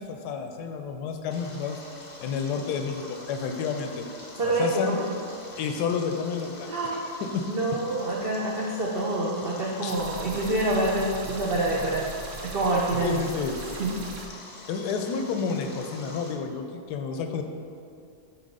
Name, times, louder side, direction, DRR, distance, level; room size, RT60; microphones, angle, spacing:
voice 1, 0.0-1.8 2.2-4.0 4.4-5.0 5.6-7.4 9.8-10.0 13.0-13.5 14.7-17.4, left 6 dB, 75° left, 5 dB, 1.1 m, -30 dB
Stream, 1.3-16.3, left 2 dB, 35° left, 0.5 m, -45 dB
voice 2, 4.4-5.0 6.7-7.0 7.5-12.1 12.4-13.2 13.8-13.9, right 2 dB, 75° right, -3 dB, 0.5 m, -26 dB
sound 1, 9.9-14.3, right 3 dB, 60° right, 0.9 m, -40 dB
8.2 x 3.0 x 5.3 m, 2.4 s
omnidirectional pair, 1.9 m